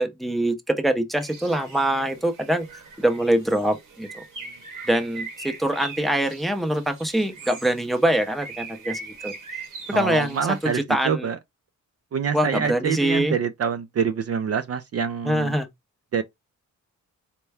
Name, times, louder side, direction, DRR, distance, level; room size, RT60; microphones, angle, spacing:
voice 1, 0.0-2.7 3.0-4.2 4.9-9.3 10.0-10.4 10.9-11.3 12.3-13.3 15.3-15.7, right 1 dB, ahead, 0.6 m, -24 dB
Bird, 1.2-10.8, right 4 dB, 75° right, 1.3 m, -41 dB
voice 2, 9.9-11.4 12.1-15.6 16.1-16.2, right 7 dB, 50° right, 0.4 m, -26 dB
4.3 x 2.2 x 3.3 m
cardioid pair, 110°, 32 cm